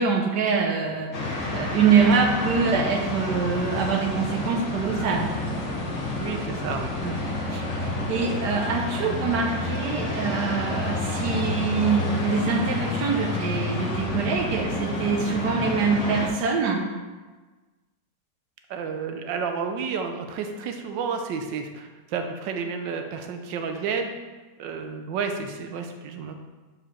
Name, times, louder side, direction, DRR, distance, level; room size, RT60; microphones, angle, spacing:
voice 1, 0.0-5.3 7.0-7.2 7.5-16.8, right 5 dB, 70° right, 2 dB, 1.4 m, -24 dB
sound 1, 1.1-16.3, left 2 dB, 45° left, 1.4 m, -29 dB
voice 2, 6.2-6.9 18.7-24.1 24.6-26.3, right 5 dB, 90° right, 5 dB, 1.4 m, -31 dB
5.0 x 4.8 x 5.6 m, 1.3 s
omnidirectional pair, 1.9 m